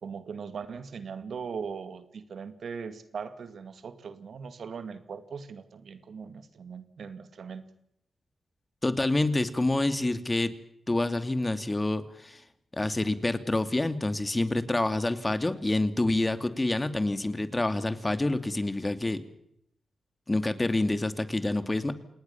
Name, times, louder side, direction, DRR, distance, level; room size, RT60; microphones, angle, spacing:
voice 1, 0.0-7.7, right 6 dB, 70° right, 11 dB, 2.2 m, -40 dB
voice 2, 8.8-10.6 10.9-12.4 12.7-19.2 20.3-21.9, left 2 dB, 25° left, 10 dB, 2.7 m, -27 dB
28.0 x 19.5 x 7.3 m, 0.74 s
supercardioid pair, 40°, 0 cm